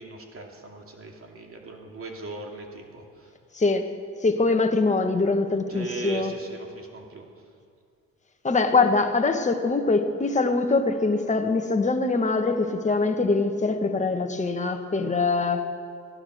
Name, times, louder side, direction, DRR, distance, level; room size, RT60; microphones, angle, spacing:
voice 1, 0.0-3.3 5.7-7.3, right 3 dB, 45° right, 1 dB, 2.5 m, -39 dB
voice 2, 3.5-3.9 4.2-6.3 8.4-15.7, left 3 dB, 25° left, 5 dB, 1.4 m, -23 dB
17.0 x 11.5 x 6.4 m, 2.2 s
cardioid pair, 90°, 30 cm